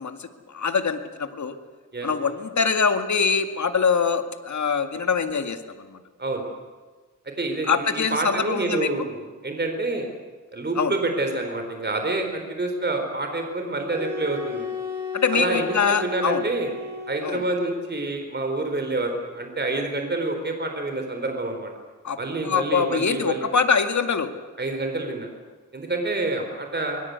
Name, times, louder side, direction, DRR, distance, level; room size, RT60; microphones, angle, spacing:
voice 1, 0.0-1.6 2.0-6.0 7.7-8.9 10.8-10.9 15.1-16.4 17.2-17.4 22.0-22.2 22.4-24.3, left 5 dB, 65° left, 7 dB, 2.1 m, -24 dB
voice 2, 7.4-10.1 10.5-14.6 15.3-16.7 17.1-21.7 22.2-23.5 24.6-25.3 25.7-27.0, right 2 dB, 35° right, 4 dB, 4.2 m, -27 dB
sound 1, 13.8-17.8, left 4 dB, 10° right, 7.0 m, -34 dB
24.5 x 22.5 x 8.2 m, 1.4 s
wide cardioid pair, 105°, 31 cm